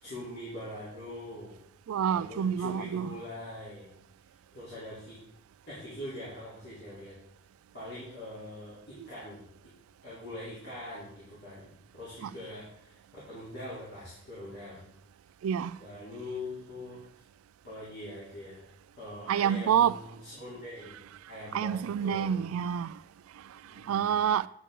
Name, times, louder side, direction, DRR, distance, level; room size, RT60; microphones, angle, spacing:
voice 1, 0.0-1.6 2.1-3.9 4.5-5.2 5.7-7.1 7.7-9.4 10.0-11.7 11.9-14.8 15.8-17.0 17.6-18.7 19.0-21.0 21.3-22.4 23.6-24.1, left 1 dB, 50° left, 3.2 m, -43 dB
voice 2, 1.9-3.1 9.0-9.1 12.2-12.3 15.4-15.8 19.3-19.9 21.5-23.0 23.8-24.5, right 8 dB, 75° right, 0.3 m, -28 dB
9.6 x 8.4 x 3.7 m
head